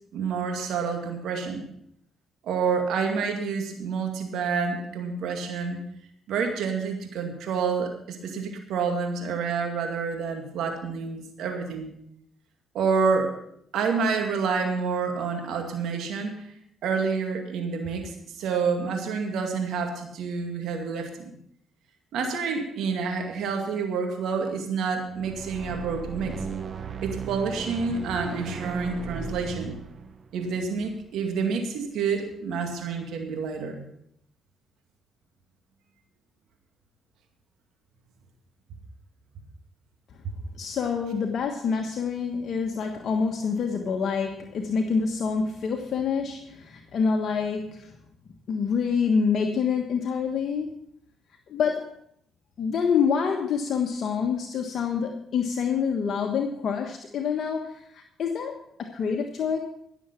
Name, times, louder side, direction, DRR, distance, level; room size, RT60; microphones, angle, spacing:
voice 1, 0.1-1.6 2.4-5.8 6.3-11.9 12.7-13.4 13.7-16.5 16.8-21.3 22.1-26.3 27.0-29.8 30.3-33.8, right 5 dB, 75° right, 4 dB, 2.2 m, -28 dB
sound 1, 25.1-31.4, right 6 dB, 50° right, 1.1 m, -36 dB
voice 2, 40.6-48.0 48.5-50.7 51.5-51.9 52.6-59.6, left 6 dB, 60° left, 2 dB, 1.4 m, -27 dB
16.0 x 7.2 x 5.7 m, 0.71 s
supercardioid pair, 65°, 0 cm